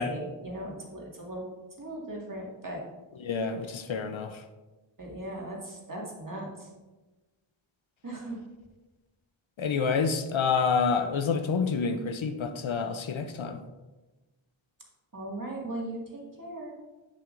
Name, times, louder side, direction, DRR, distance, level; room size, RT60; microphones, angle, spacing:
voice 1, 0.0-1.4 1.8-2.8 5.0-6.7 8.0-8.4 15.1-16.7, right 1 dB, 40° right, -3 dB, 1.9 m, -38 dB
voice 2, 3.2-4.4 9.6-13.6, left 5 dB, 70° left, 7 dB, 0.7 m, -28 dB
7.4 x 7.2 x 2.5 m, 1.2 s
wide cardioid pair, 55°, 48 cm